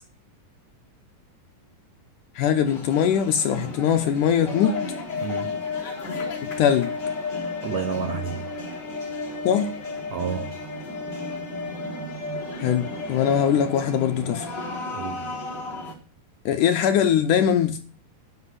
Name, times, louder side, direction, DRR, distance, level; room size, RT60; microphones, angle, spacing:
voice 1, 2.4-4.8 6.6-6.9 9.4-9.7 12.6-14.5 16.5-17.8, left 9 dB, 75° left, 2.0 m, -21 dB
sound 1, 2.7-15.9, left 3 dB, 30° left, 3.4 m, -33 dB
voice 2, 5.2-5.6 7.6-8.4 10.1-10.6 14.9-15.3, right 7 dB, 85° right, 1.5 m, -30 dB
9.8 x 5.9 x 8.2 m
omnidirectional pair, 4.3 m